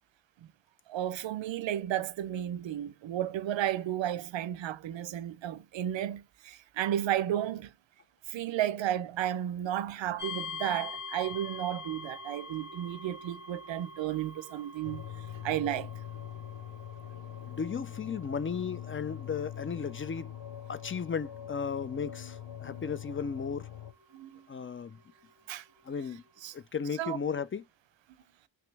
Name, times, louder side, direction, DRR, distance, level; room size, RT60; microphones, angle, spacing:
voice 1, 0.9-7.7 8.3-15.0 15.4-15.9 24.1-24.4 25.5-25.6 26.4-26.5 27.0-27.2, right 11 dB, 75° right, 0.5 m, -33 dB
sound 1, 10.2-25.0, left 3 dB, 5° right, 1.5 m, -46 dB
sound 2, 14.8-23.9, left 11 dB, 70° left, 0.7 m, -43 dB
voice 2, 17.5-20.3 20.7-23.7 24.5-25.0 25.9-26.2 26.5-27.6, left 6 dB, 30° left, 0.4 m, -35 dB
3.0 x 3.0 x 3.3 m
cardioid pair, 40°, 45 cm